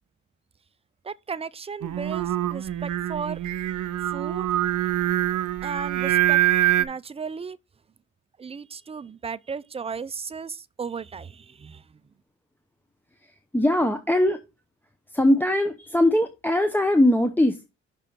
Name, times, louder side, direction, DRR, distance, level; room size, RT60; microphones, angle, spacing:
voice 1, 1.0-3.4 4.1-4.5 5.6-6.4 6.8-7.6 8.4-11.8, right 5 dB, 20° right, 0.3 m, -35 dB
Singing, 1.8-6.9, right 13 dB, 70° right, 0.7 m, -24 dB
voice 2, 13.2-14.4 15.1-17.7, left 1 dB, 5° left, 0.7 m, -21 dB
6.1 x 4.4 x 5.1 m
cardioid pair, 90°, 30 cm